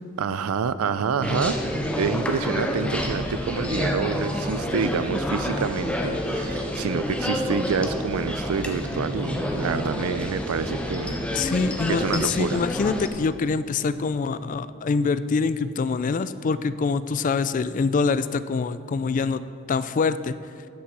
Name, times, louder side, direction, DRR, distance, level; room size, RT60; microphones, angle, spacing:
voice 1, 0.2-11.5 11.9-12.6, right 6 dB, 90° right, 14 dB, 0.4 m, -28 dB
sound 1, 1.2-13.1, left 1 dB, 5° left, 0.7 m, -28 dB
voice 2, 11.3-19.4 19.7-20.4, left 4 dB, 35° left, 14 dB, 0.3 m, -25 dB
8.0 x 6.6 x 7.5 m, 2.5 s
head